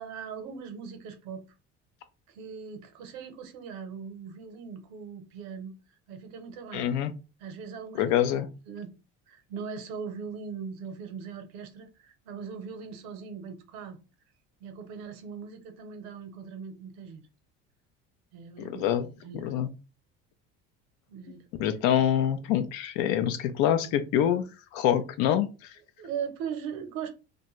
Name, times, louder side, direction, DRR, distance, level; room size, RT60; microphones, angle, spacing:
voice 1, 0.0-1.4 2.3-5.7 6.1-6.9 7.4-8.2 8.7-8.9 9.3-14.0 14.6-17.2 18.3-19.5 21.1-21.5 26.0-27.1, right 6 dB, 90° right, 0.7 m, -40 dB
voice 2, 6.7-7.1 8.0-8.5 18.6-19.1 19.3-19.7 21.6-24.5 24.7-25.7, left 10 dB, 80° left, 0.5 m, -25 dB
2.5 x 2.2 x 2.9 m
supercardioid pair, 100°, 30 cm